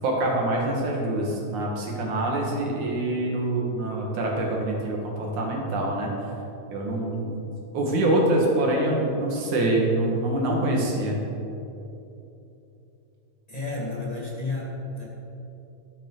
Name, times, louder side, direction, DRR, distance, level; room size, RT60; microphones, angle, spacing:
voice 1, 0.0-6.1 6.7-7.3 7.7-11.2, right 1 dB, 60° right, -1 dB, 3.0 m, -25 dB
voice 2, 13.5-15.0, left 3 dB, 15° left, -6 dB, 1.4 m, -31 dB
13.0 x 12.5 x 4.0 m, 2.9 s
omnidirectional pair, 4.0 m